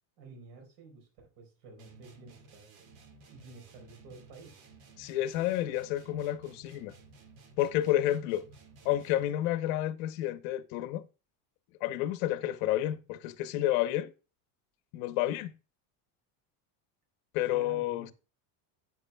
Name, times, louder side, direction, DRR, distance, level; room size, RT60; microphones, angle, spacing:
voice 1, 0.2-2.7 3.3-4.7 17.5-18.1, right 3 dB, 80° right, 4.2 m, -51 dB
sound 1, 1.8-9.4, right 3 dB, 50° right, 1.9 m, -56 dB
voice 2, 5.0-6.9 7.6-8.4 8.8-11.0 11.8-14.1 14.9-15.5 17.3-18.1, left 13 dB, 80° left, 1.0 m, -30 dB
9.5 x 9.0 x 2.3 m
cardioid pair, 160°, 40 cm